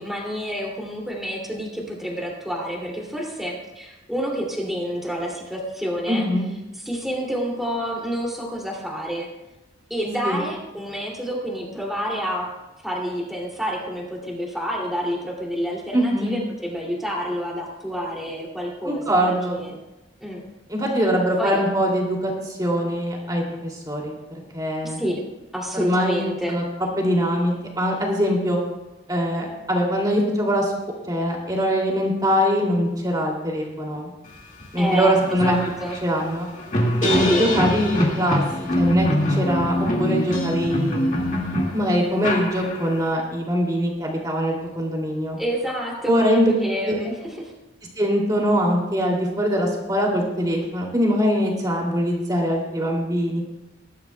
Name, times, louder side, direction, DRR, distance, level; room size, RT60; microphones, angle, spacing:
voice 1, 0.0-6.3 6.8-9.3 9.9-12.5 12.8-19.8 20.2-20.4 21.4-21.6 24.8-25.2 25.5-26.6 34.8-36.0 37.3-37.4 45.4-47.5, equal, ahead, -3 dB, 2.5 m, -28 dB
voice 2, 6.1-6.5 10.2-10.4 15.9-16.4 18.8-19.6 20.7-24.1 24.5-25.0 25.7-26.6 27.0-28.6 29.1-30.7 31.1-34.1 34.7-35.5 36.0-36.5 37.0-38.4 38.8-41.2 41.7-45.4 46.0-46.5 46.9-47.1 48.0-53.4, equal, 20° right, -1 dB, 2.6 m, -22 dB
sound 1, 34.6-34.7 35.0-43.1, left 1 dB, 40° left, 2.0 m, -24 dB
20.5 x 11.5 x 2.2 m, 0.99 s
head